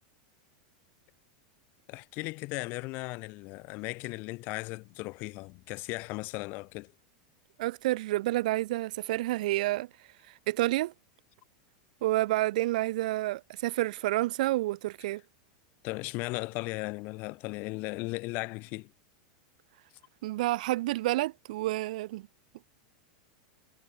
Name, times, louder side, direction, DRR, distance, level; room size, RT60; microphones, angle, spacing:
voice 1, 1.9-6.9 15.8-18.9, left 24 dB, 45° left, 0.6 m, -36 dB
voice 2, 7.6-9.9 10.5-10.9 12.0-15.2 20.2-22.3, right 17 dB, 70° right, 0.4 m, -29 dB
supercardioid pair, 135°, 4 cm